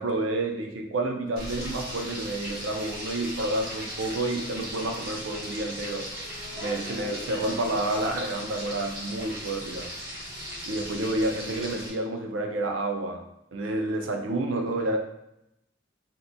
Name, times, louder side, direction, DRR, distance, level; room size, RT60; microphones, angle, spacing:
voice 1, 0.0-6.1 6.6-9.9 10.7-13.2 13.5-15.0, right 2 dB, 85° right, 3 dB, 0.5 m, -29 dB
Frying (food), 1.4-11.9, equal, 55° right, 1.0 m, -37 dB
2.9 x 2.2 x 3.7 m, 0.82 s
head